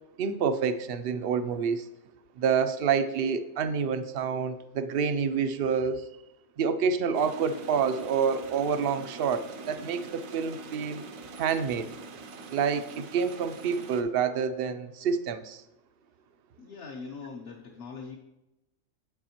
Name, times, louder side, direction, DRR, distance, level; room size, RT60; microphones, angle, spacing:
voice 1, 0.2-1.9 2.4-6.1 6.6-11.0 11.4-11.9 12.5-15.6, right 6 dB, 60° right, 10 dB, 0.6 m, -28 dB
sound 1, 7.1-14.0, right 4 dB, 80° right, 1.2 m, -43 dB
voice 2, 16.6-18.2, left 4 dB, 55° left, 0 dB, 1.0 m, -41 dB
8.3 x 7.0 x 2.9 m, 0.95 s
omnidirectional pair, 1.4 m